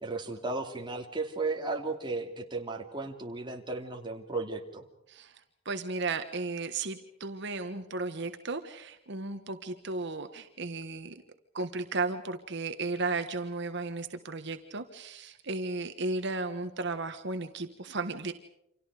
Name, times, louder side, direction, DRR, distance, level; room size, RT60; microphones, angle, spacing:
voice 1, 0.0-4.8, right 3 dB, 25° right, 2 dB, 2.8 m, -35 dB
voice 2, 5.1-11.2 11.5-18.3, right 3 dB, 60° right, 7 dB, 1.4 m, -35 dB
29.5 x 26.5 x 5.0 m, 0.80 s
head